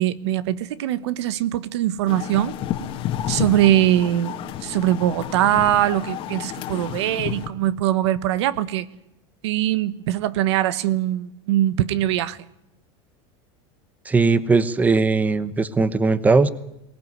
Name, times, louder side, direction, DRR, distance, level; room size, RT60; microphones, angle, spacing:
voice 1, 0.0-2.6 3.3-4.4 4.6-8.9 9.4-12.4, right 13 dB, 80° right, 1.2 m, -22 dB
sound 1, 2.1-7.5, left 10 dB, 40° left, 2.0 m, -30 dB
voice 2, 14.0-16.5, right 4 dB, 10° right, 1.0 m, -19 dB
24.0 x 18.0 x 9.4 m
supercardioid pair, 145°, 14 cm